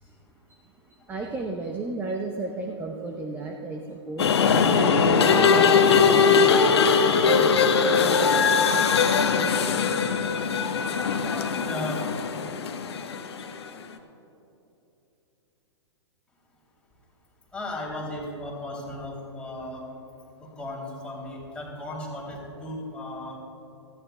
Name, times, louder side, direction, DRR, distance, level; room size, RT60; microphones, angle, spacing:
voice 1, 1.1-4.3 4.7-6.8 7.2-7.5 8.0-9.6, right 3 dB, 15° right, 2 dB, 0.7 m, -34 dB
sound 1, 4.2-13.6, left 5 dB, 65° left, 1.0 m, -21 dB
voice 2, 10.7-12.1 17.5-19.8 20.4-23.4, left 1 dB, 5° left, -3 dB, 2.8 m, -37 dB
18.5 x 14.0 x 2.2 m, 2.9 s
figure-of-eight pair, 115°, 15 cm